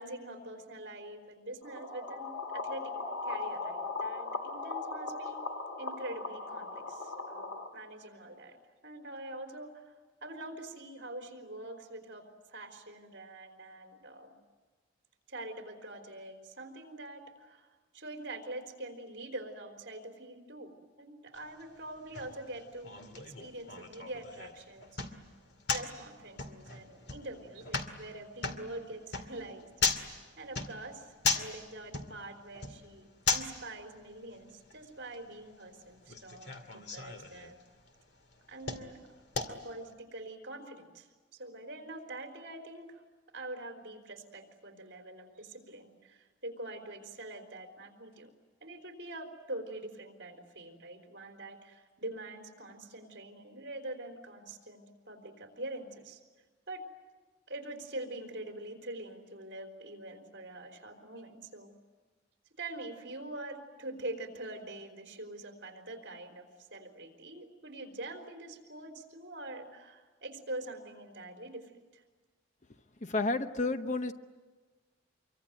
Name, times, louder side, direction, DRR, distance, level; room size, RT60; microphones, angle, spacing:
voice 1, 0.0-2.9 3.2-5.4 5.8-8.6 8.8-9.9 10.2-12.3 12.5-14.4 15.3-17.7 17.9-25.0 25.7-30.1 30.4-37.6 38.5-39.0 39.5-41.1 41.3-43.0 43.3-48.3 48.6-56.2 56.7-56.8 57.5-61.7 62.6-72.0, right 2 dB, 55° right, 5 dB, 4.1 m, -44 dB
sound 1, 1.6-7.7, left 3 dB, 90° left, 3.1 m, -38 dB
sound 2, 21.3-39.9, left 4 dB, 55° left, 2.2 m, -38 dB
voice 2, 73.0-74.1, left 2 dB, 35° left, 8 dB, 1.0 m, -31 dB
26.0 x 24.0 x 9.4 m, 1.3 s
head